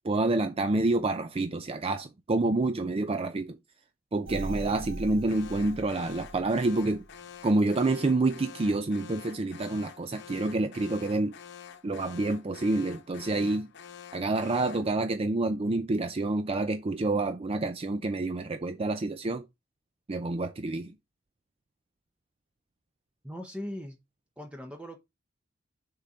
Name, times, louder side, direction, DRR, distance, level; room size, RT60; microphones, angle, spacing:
voice 1, 0.0-3.6 4.1-7.0 7.4-11.3 11.8-13.7 14.1-19.5 20.1-20.9, right 2 dB, 30° right, 0.4 m, -28 dB
sound 1, 4.3-7.1 7.6-7.7, right 2 dB, 65° right, 1.0 m, -40 dB
Alarm, 5.3-15.0, left 8 dB, 60° left, 0.8 m, -48 dB
voice 2, 23.2-24.0 24.4-25.0, equal, 5° right, 0.8 m, -39 dB
6.6 x 3.8 x 4.3 m
head